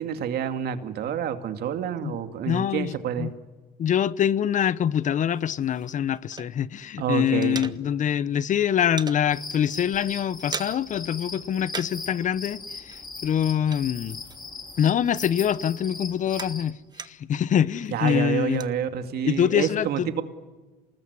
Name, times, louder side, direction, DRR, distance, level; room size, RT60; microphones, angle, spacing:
voice 1, 0.0-3.3 7.0-7.7 17.9-20.2, right 8 dB, 70° right, 2.4 m, -28 dB
voice 2, 2.5-3.3 3.8-14.2 14.8-18.6 19.2-20.1, left 9 dB, 50° left, 0.8 m, -25 dB
sound 1, 5.3-6.8 7.1-8.2 8.5-9.2 9.7-9.8 10.1-11.0 11.3-12.1 12.4-14.7 15.0-17.4 17.8-18.7, right 4 dB, 25° right, 1.3 m, -40 dB
sound 2, 9.3-16.7, left 4 dB, 25° left, 3.1 m, -39 dB
27.5 x 20.0 x 9.7 m
cardioid pair, 110°, 17 cm